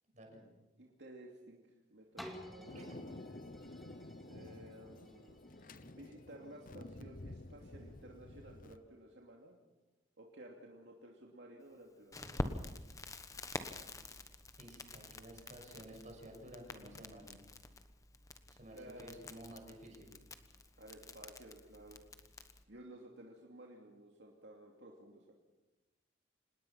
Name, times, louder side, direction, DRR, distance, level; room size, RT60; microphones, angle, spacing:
voice 1, 0.8-1.6 1.9-2.8 4.3-5.4 5.9-9.5 10.2-12.5 18.7-19.3 20.8-22.1 22.7-25.3, right 1 dB, 65° right, -1 dB, 2.7 m, -55 dB
sound 1, 2.2-7.9 8.5-8.6, equal, ahead, 2.3 m, -55 dB
Thunder, 2.7-8.8, left 2 dB, 45° left, 0.9 m, -51 dB
Crackle, 12.1-22.6, left 1 dB, 20° left, 1.2 m, -47 dB
voice 2, 14.6-17.3 18.5-20.1, right 1 dB, 40° right, 2 dB, 6.5 m, -53 dB
26.5 x 20.0 x 5.8 m, 1.1 s
head